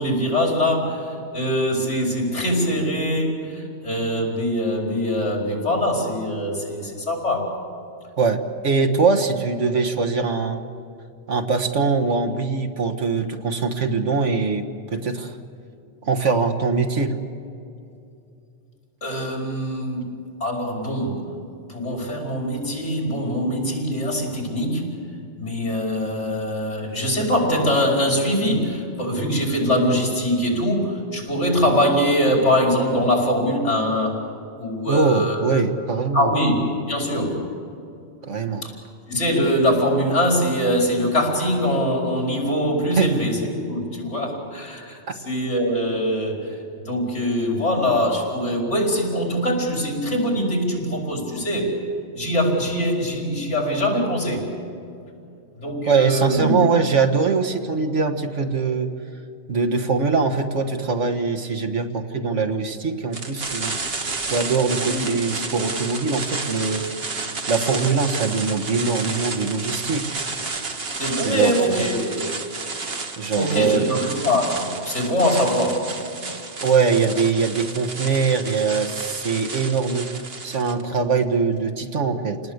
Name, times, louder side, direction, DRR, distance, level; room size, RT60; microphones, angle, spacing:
voice 1, 0.0-7.5 19.0-20.1 20.4-21.3 21.7-24.9 25.4-34.3 34.6-35.6 36.1-37.5 38.6-38.7 39.1-46.6 46.8-51.8 52.2-54.5 55.5-56.6 64.9-65.1 70.9-72.2 73.4-76.0, equal, 75° left, 0 dB, 5.2 m, -23 dB
voice 2, 8.2-10.6 11.3-15.4 16.0-17.2 34.9-36.3 38.2-38.7 43.0-43.1 44.2-44.3 45.1-45.2 55.9-58.9 59.5-63.8 64.3-66.9 67.5-70.2 70.5-70.6 71.2-71.9 73.2-73.9 76.6-80.1 80.4-82.4, right 4 dB, 85° right, 6 dB, 1.9 m, -22 dB
sound 1, 63.1-80.8, right 4 dB, 55° right, 1.8 m, -31 dB
28.5 x 19.5 x 8.1 m, 2.6 s
omnidirectional pair, 1.2 m